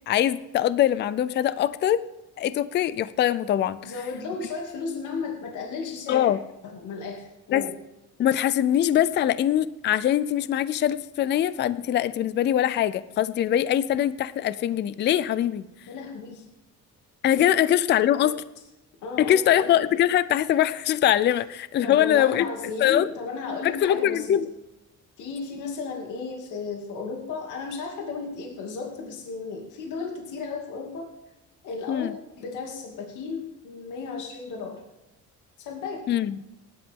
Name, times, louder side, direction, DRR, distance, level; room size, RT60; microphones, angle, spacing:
voice 1, 0.1-2.0 2.4-3.9 6.1-6.4 7.5-7.7 8.2-15.7 17.2-18.4 19.2-22.5 22.8-23.1 23.6-24.5 31.9-32.1 36.1-36.4, left 11 dB, 35° left, 16 dB, 0.4 m, -22 dB
voice 2, 3.8-6.3 6.6-7.7 15.9-16.4 17.3-17.4 18.2-18.3 19.0-19.6 21.8-24.4 25.2-31.1 31.6-32.1 32.4-34.8 35.6-36.1, left 4 dB, 70° left, 1 dB, 2.6 m, -34 dB
18.0 x 11.0 x 3.7 m, 0.97 s
cardioid pair, 175°, 31 cm